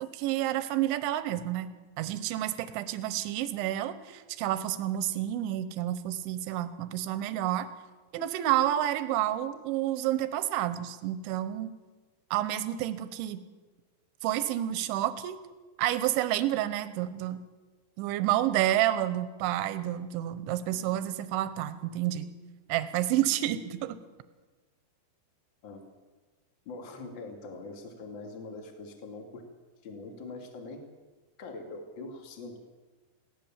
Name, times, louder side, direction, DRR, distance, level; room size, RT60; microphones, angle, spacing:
voice 1, 0.0-1.7 2.0-7.7 8.1-11.7 12.3-13.4 14.2-15.4 15.8-17.4 18.0-22.3 22.7-24.0, right 13 dB, 85° right, 12 dB, 3.3 m, -29 dB
voice 2, 26.6-29.4 29.8-30.8 31.4-32.6, left 3 dB, 35° left, 3 dB, 2.4 m, -43 dB
21.5 x 16.5 x 7.3 m, 1.3 s
omnidirectional pair, 5.3 m